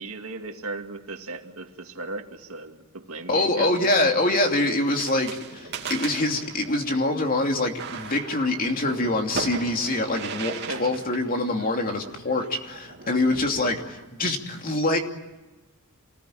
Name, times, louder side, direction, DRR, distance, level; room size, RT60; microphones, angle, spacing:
voice 1, 0.0-3.7 10.5-11.0, right 3 dB, 70° right, 4 dB, 2.3 m, -36 dB
voice 2, 3.3-15.0, left 2 dB, 40° left, 3 dB, 2.8 m, -25 dB
sound 1, 4.9-14.1, right 4 dB, 50° right, 3.1 m, -38 dB
27.5 x 19.5 x 9.1 m, 1.1 s
head